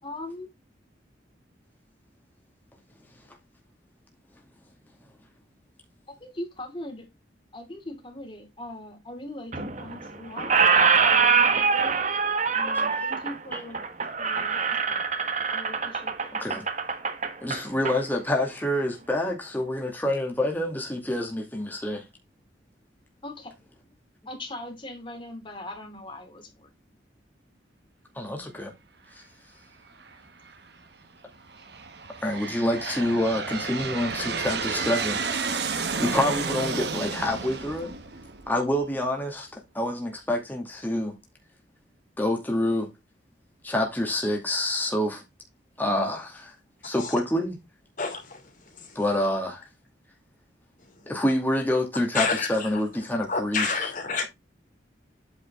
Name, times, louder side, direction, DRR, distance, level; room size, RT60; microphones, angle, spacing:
voice 1, 0.0-0.5 6.2-7.0 7.5-12.0 12.5-13.8 14.2-15.0 15.5-16.3 23.2-23.5 24.3-26.7 36.7-36.9, left 1 dB, 30° left, 3.1 m, -40 dB
Squeak, 9.5-10.1 10.4-18.0, right 5 dB, 40° right, 1.3 m, -24 dB
voice 2, 17.4-22.0 28.2-28.7 32.2-35.4 36.0-37.9 38.5-41.1 42.2-42.9 43.6-45.2 45.8-46.5 46.8-47.6 49.0-49.6 51.1-53.8, left 1 dB, 10° left, 2.3 m, -27 dB
Aircraft, 30.0-30.6 31.3-38.8, right 5 dB, 60° right, 1.3 m, -32 dB
voice 3, 48.0-48.4 48.8-48.9 52.1-52.7 53.3-54.3, left 4 dB, 45° left, 3.0 m, -28 dB
8.9 x 5.7 x 3.7 m
head